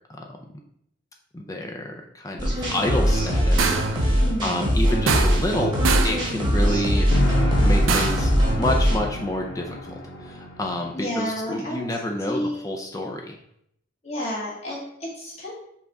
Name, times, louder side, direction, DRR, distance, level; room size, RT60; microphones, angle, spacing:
voice 1, 1.3-5.7 6.0-7.1 7.6-8.3 8.6-9.9 10.2-13.4, left 1 dB, 15° left, 2 dB, 0.4 m, -28 dB
sound 1, 2.4-9.0, equal, 20° right, 1.1 m, -22 dB
sound 2, 3.6-4.0 5.1-5.6 5.8-6.2 7.9-8.3, right 5 dB, 85° right, 0.5 m, -24 dB
voice 2, 4.2-4.7 10.9-11.8 12.3-12.7 14.0-15.5, equal, 35° left, -6 dB, 1.6 m, -31 dB
sound 3, 7.1-11.2, left 1 dB, 70° left, 0.7 m, -26 dB
5.6 x 2.4 x 4.0 m, 0.72 s
head